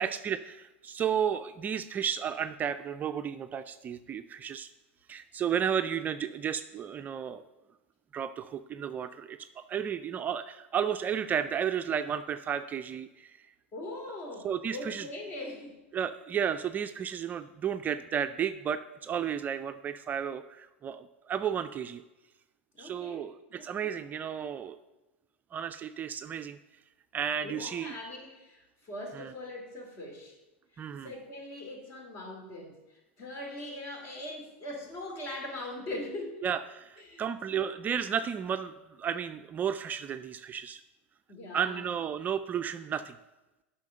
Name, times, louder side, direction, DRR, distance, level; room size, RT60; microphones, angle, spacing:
voice 1, 0.0-4.7 5.1-7.4 8.1-13.5 14.4-15.1 15.9-22.0 22.8-24.8 25.5-26.6 27.1-28.0 29.1-29.3 30.8-31.1 36.4-40.8 41.5-43.2, right 8 dB, 25° right, 10 dB, 0.4 m, -33 dB
voice 2, 13.7-15.8 22.7-24.0 27.4-30.4 30.7-36.4 37.0-37.2 37.5-37.7 41.3-41.8, left 1 dB, 40° left, 2 dB, 2.9 m, -41 dB
8.3 x 5.7 x 6.5 m, 1.0 s
hypercardioid pair, 105°, 7 cm